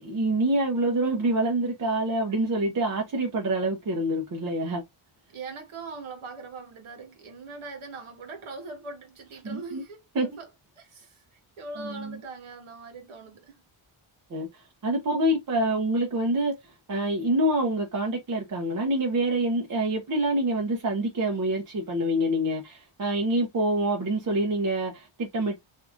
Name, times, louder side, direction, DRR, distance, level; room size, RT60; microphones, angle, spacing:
voice 1, 0.0-4.8 9.4-9.8 10.1-10.3 11.8-12.2 14.3-25.6, right 1 dB, 40° right, 0.8 m, -26 dB
voice 2, 5.3-10.5 10.8-11.1 11.6-13.6, right 3 dB, 75° right, 1.3 m, -41 dB
3.6 x 2.7 x 2.4 m
wide cardioid pair, 170°, 49 cm